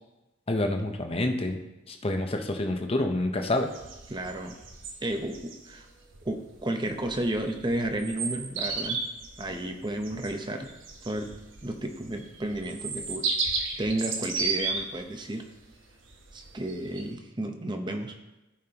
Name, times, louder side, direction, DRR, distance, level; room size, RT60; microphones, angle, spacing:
voice 1, 0.5-1.6 1.9-3.7, left 1 dB, 30° left, 4 dB, 0.7 m, -28 dB
sound 1, 3.4-17.1, right 4 dB, 70° right, 1.1 m, -35 dB
voice 2, 4.1-4.6 5.0-5.9 6.2-9.0 9.4-10.7 11.0-11.3 11.6-15.5 16.3-18.1, right 1 dB, 25° right, 5 dB, 0.8 m, -32 dB
14.5 x 5.3 x 2.9 m, 1.0 s
head